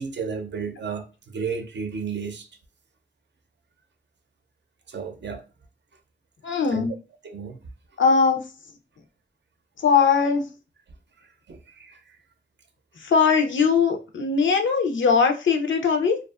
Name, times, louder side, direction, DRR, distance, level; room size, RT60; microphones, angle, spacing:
voice 1, 0.0-2.5 4.9-5.4 6.7-6.9 7.2-7.6 11.2-12.2, right 5 dB, 65° right, 0.5 m, -33 dB
voice 2, 6.4-6.9 8.0-8.5 9.8-10.5 13.0-16.2, left 5 dB, 85° left, 0.5 m, -20 dB
2.5 x 2.3 x 2.3 m
wide cardioid pair, 70°, 19 cm